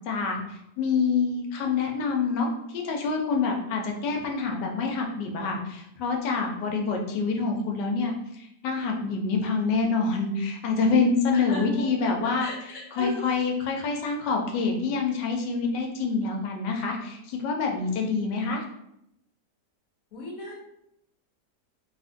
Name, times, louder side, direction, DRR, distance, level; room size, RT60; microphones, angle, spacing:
voice 1, 0.0-0.4 0.8-12.5 12.9-18.6, left 4 dB, 80° left, 2 dB, 1.2 m, -26 dB
voice 2, 11.3-13.3 20.1-20.5, left 2 dB, 65° left, -2 dB, 1.0 m, -36 dB
3.2 x 2.4 x 2.5 m, 0.79 s
omnidirectional pair, 1.8 m